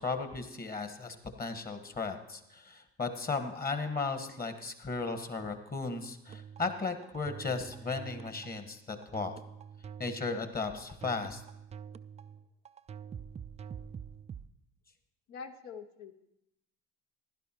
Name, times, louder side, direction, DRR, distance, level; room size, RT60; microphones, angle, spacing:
voice 1, 0.0-9.3 10.0-11.4, left 4 dB, 30° left, 8 dB, 1.5 m, -36 dB
sound 1, 6.3-14.5, right 7 dB, 20° right, 0.4 m, -46 dB
voice 2, 15.3-16.1, left 5 dB, 65° left, 8 dB, 1.0 m, -44 dB
16.0 x 11.0 x 3.0 m, 0.85 s
hypercardioid pair, 60°, 30 cm